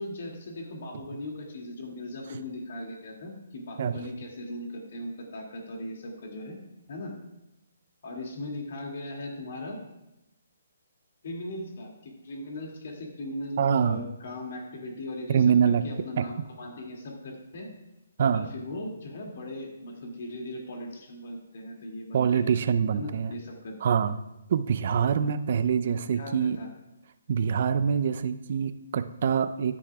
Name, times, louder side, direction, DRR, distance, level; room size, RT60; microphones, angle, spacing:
voice 1, 0.0-6.6 6.9-7.1 8.0-9.8 11.2-15.4 15.6-17.7 18.3-22.6 22.9-24.0 26.1-26.7, left 1 dB, 60° left, 0 dB, 2.4 m, -38 dB
voice 2, 13.6-14.0 15.3-15.9 16.2-16.3 18.2-18.5 22.1-23.3 23.8-24.2 24.5-26.6 27.3-29.8, right 7 dB, 50° right, 11 dB, 0.6 m, -25 dB
14.5 x 9.7 x 2.4 m, 0.92 s
hypercardioid pair, 150°, 0 cm